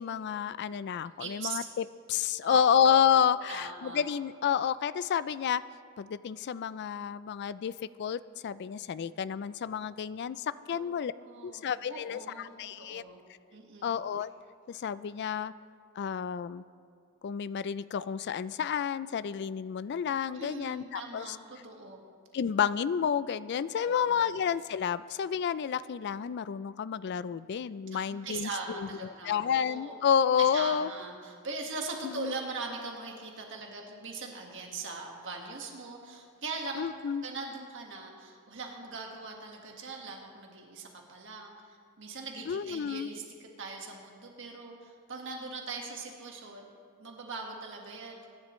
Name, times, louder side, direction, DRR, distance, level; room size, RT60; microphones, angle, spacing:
voice 1, 0.0-1.6 2.1-5.6 6.0-11.1 11.4-13.0 13.8-14.3 14.7-15.5 16.0-16.6 17.2-21.4 22.3-30.9 32.0-32.3 36.8-37.2 42.5-43.1, left 8 dB, 50° left, 17 dB, 0.3 m, -30 dB
voice 2, 1.2-1.6 2.4-3.0 3.5-4.0 10.7-13.2 13.5-14.0 20.3-22.0 23.7-24.3 27.9-29.9 30.4-36.9 37.2-46.7 47.0-48.3, right 3 dB, 55° right, 1 dB, 1.6 m, -41 dB
23.0 x 10.5 x 3.1 m, 2.2 s
head